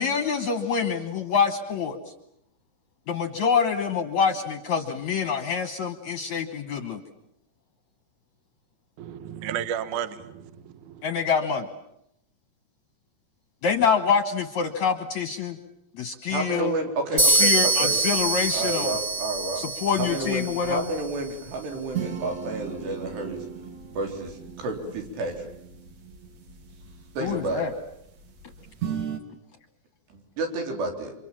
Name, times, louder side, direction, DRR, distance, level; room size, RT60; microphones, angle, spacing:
voice 1, 0.0-2.0 3.1-7.0 11.0-11.7 13.6-15.6 16.0-16.7 17.1-18.9 19.6-20.8 27.2-27.7, left 6 dB, 65° left, 8 dB, 1.9 m, -26 dB
voice 2, 9.0-11.0, right 9 dB, 65° right, 12 dB, 2.2 m, -33 dB
voice 3, 16.3-18.0 18.5-19.6 20.0-23.4 24.0-25.5 27.2-27.7 30.1-31.1, right 2 dB, 80° right, 3 dB, 6.0 m, -30 dB
sound 1, 17.2-20.9, right 3 dB, 30° right, 3.3 m, -24 dB
sound 2, 17.9-29.2, right 7 dB, 50° right, 2.9 m, -39 dB
29.0 x 26.0 x 7.5 m, 0.77 s
omnidirectional pair, 4.8 m